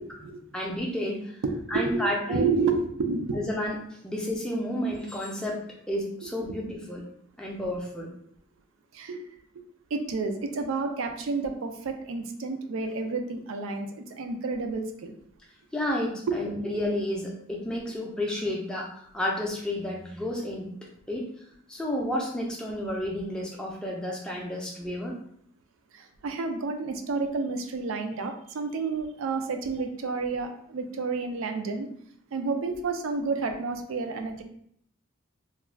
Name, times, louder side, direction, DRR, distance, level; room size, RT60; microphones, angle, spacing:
voice 1, 0.0-0.4 1.4-3.4 6.2-6.5 8.9-9.3 9.5-9.6 9.9-15.2 16.3-16.7 25.9-31.9 32.3-34.4, right 4 dB, 65° right, 6 dB, 0.4 m, -30 dB
voice 2, 0.5-1.4 1.7-2.5 3.3-3.8 4.0-7.1 7.4-8.1 15.7-20.7 21.1-21.3 21.7-25.2, left 1 dB, 5° left, -2 dB, 0.4 m, -31 dB
2.4 x 2.2 x 3.2 m, 0.66 s
head